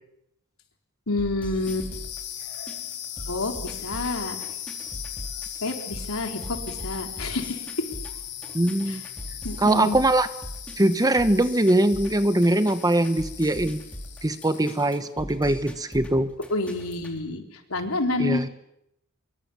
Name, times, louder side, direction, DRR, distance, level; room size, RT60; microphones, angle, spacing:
voice 1, 1.1-2.0 3.3-4.4 5.6-7.6 8.9-9.0 9.4-10.0 16.5-17.4 17.7-18.4, left 2 dB, 85° left, 3 dB, 4.1 m, -28 dB
sound 1, 1.2-17.2, equal, 5° left, 3.9 m, -40 dB
sound 2, 1.5-15.0, left 10 dB, 55° left, 4.1 m, -38 dB
voice 2, 8.5-9.0 9.6-10.3 10.8-13.8 14.2-16.3 18.2-18.4, right 1 dB, 20° right, 11 dB, 1.2 m, -22 dB
26.0 x 23.5 x 7.1 m, 0.80 s
head